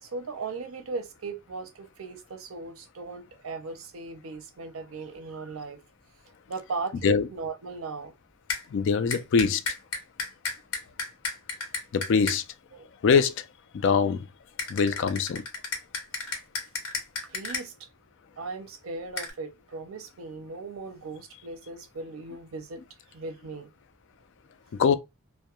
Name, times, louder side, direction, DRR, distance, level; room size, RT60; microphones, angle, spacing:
voice 1, 0.0-5.8 6.5-8.1 12.7-12.9 17.3-17.9 18.4-22.8 23.1-23.7, right 4 dB, 70° right, 0.5 m, -38 dB
sound 1, 8.5-8.6 9.1-12.4 14.6-17.6 19.2-19.3, left 4 dB, 80° left, 1.0 m, -32 dB
voice 2, 8.7-9.6 11.9-12.4 13.0-13.5 13.7-14.3 14.7-15.4 24.8-24.9, left 5 dB, 55° left, 0.3 m, -23 dB
2.2 x 2.1 x 2.8 m
head